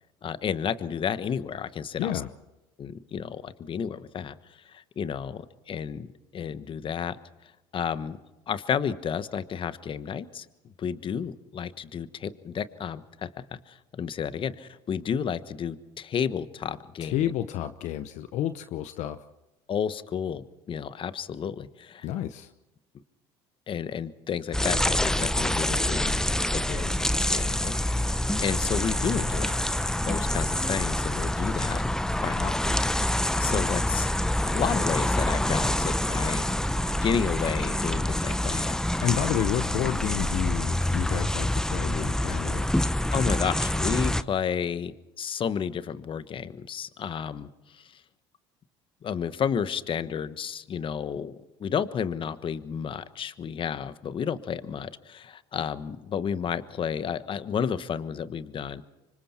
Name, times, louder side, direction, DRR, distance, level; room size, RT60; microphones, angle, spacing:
voice 1, 0.2-2.1 2.8-4.3 4.7-7.2 7.7-8.2 8.5-10.4 10.8-13.3 13.7-17.3 19.7-22.1 23.7-26.2 26.5-29.6 30.0-31.8 32.2-33.1 33.4-34.1 34.5-36.4 37.0-39.0 43.1-47.8 49.0-58.8, left 7 dB, 40° left, 13 dB, 1.2 m, -31 dB
voice 2, 2.0-2.3 17.0-19.2 22.0-22.5 39.0-42.7, left 11 dB, 60° left, 11 dB, 0.9 m, -30 dB
sound 1, 24.5-44.2, left 1 dB, 5° left, 0.8 m, -26 dB
26.5 x 24.5 x 4.4 m, 1.0 s
supercardioid pair, 85°, 13 cm